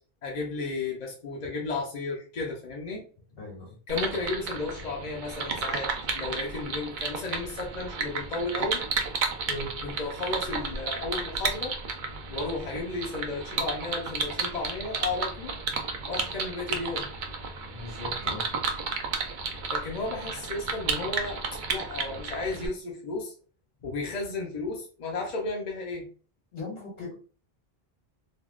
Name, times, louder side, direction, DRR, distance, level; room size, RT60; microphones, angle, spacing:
voice 1, 0.2-3.0 3.9-5.9 6.1-8.8 9.8-11.7 12.3-15.5 16.1-17.1 19.7-21.4 21.7-23.3 23.8-26.1, left 3 dB, 50° left, -1 dB, 0.7 m, -33 dB
sound 1, 3.9-22.7, right 4 dB, 60° right, 0.6 m, -33 dB
voice 2, 17.7-18.6 26.5-27.1, left 2 dB, 70° left, -4 dB, 1.9 m, -38 dB
3.5 x 2.2 x 2.4 m, 0.40 s
omnidirectional pair, 1.0 m